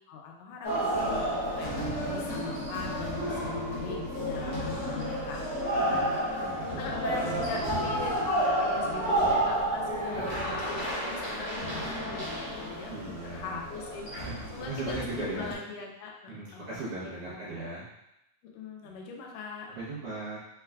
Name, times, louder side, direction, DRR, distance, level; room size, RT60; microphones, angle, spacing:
voice 1, 0.1-5.6 5.9-14.1 14.5-17.6 18.5-19.7, left 5 dB, 80° left, 0 dB, 2.1 m, -41 dB
sound 1, 0.6-15.5, right 1 dB, 55° left, 2.2 m, -31 dB
voice 2, 5.8-6.1 6.4-7.6 10.1-10.4 12.9-13.6 14.1-15.5 16.3-17.8 18.8-19.0 19.7-20.4, right 2 dB, 75° right, -9 dB, 1.3 m, -38 dB
5.4 x 3.4 x 2.3 m, 0.85 s
omnidirectional pair, 4.0 m